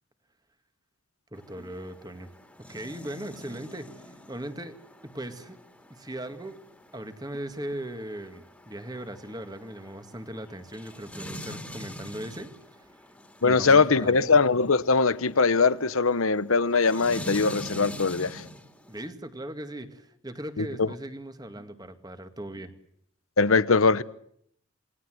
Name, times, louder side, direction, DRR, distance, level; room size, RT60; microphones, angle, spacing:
voice 1, 1.3-2.3 2.7-4.8 5.0-5.6 5.9-6.6 6.9-13.0 13.4-14.4 18.9-22.7, right 1 dB, 20° right, 2.1 m, -39 dB
sound 1, 1.4-19.1, equal, 5° left, 2.7 m, -45 dB
voice 2, 13.4-18.4 20.6-20.9 23.4-24.0, left 4 dB, 80° left, 1.0 m, -21 dB
28.0 x 20.0 x 7.8 m
head